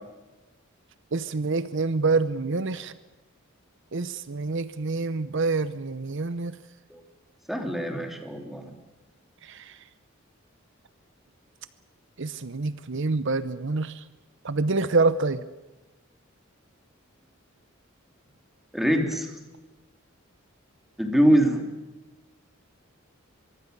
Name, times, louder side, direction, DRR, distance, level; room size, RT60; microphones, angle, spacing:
voice 1, 1.1-2.9 3.9-6.5 9.5-9.6 12.2-13.9 14.4-15.4, right 3 dB, 60° right, 14 dB, 0.8 m, -26 dB
voice 2, 7.5-8.6 18.7-19.3 21.0-21.6, equal, ahead, 3 dB, 3.0 m, -23 dB
23.5 x 23.5 x 6.7 m, 1.1 s
head